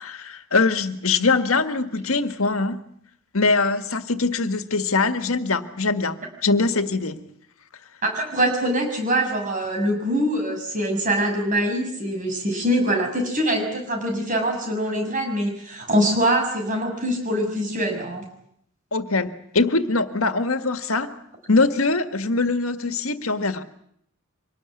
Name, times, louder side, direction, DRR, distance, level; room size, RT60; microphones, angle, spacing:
voice 1, 0.0-2.8 3.3-7.2 18.9-23.6, left 3 dB, 90° left, 1.7 m, -23 dB
voice 2, 8.0-18.2, right 1 dB, 40° right, 6.3 m, -23 dB
25.0 x 19.5 x 9.7 m
head